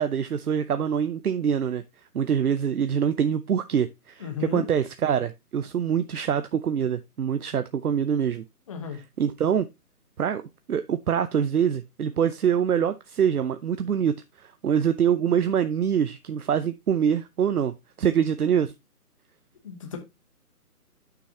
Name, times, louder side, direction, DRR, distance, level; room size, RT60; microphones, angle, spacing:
voice 1, 0.0-1.8 2.1-8.4 9.2-9.7 10.2-18.7, right 8 dB, 70° right, 0.8 m, -25 dB
voice 2, 4.2-4.7 8.7-9.0 19.6-20.0, left 7 dB, 20° left, 1.1 m, -33 dB
10.0 x 6.2 x 2.8 m
hypercardioid pair, 165°, 46 cm